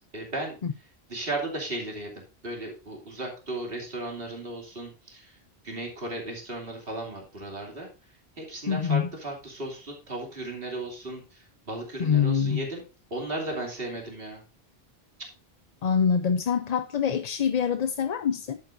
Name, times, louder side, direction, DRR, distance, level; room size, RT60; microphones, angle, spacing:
voice 1, 0.1-5.4 5.6-7.9 8.4-12.8 13.1-14.4 15.2-15.3, right 2 dB, 65° right, 2.9 m, -35 dB
voice 2, 8.7-9.1 12.0-12.6 15.8-18.6, left 7 dB, 50° left, 0.6 m, -25 dB
11.0 x 8.3 x 2.6 m
omnidirectional pair, 1.1 m